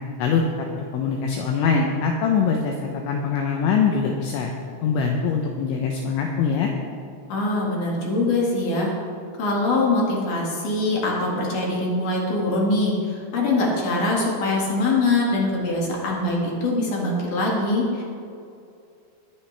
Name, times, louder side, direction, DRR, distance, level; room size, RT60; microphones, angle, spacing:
voice 1, 0.8-4.5 4.8-6.7, left 5 dB, 80° left, 1 dB, 2.9 m, -23 dB
voice 2, 7.3-8.9 9.4-18.0, left 2 dB, 55° left, -3 dB, 2.7 m, -23 dB
22.0 x 8.5 x 3.3 m, 2.5 s
omnidirectional pair, 5.9 m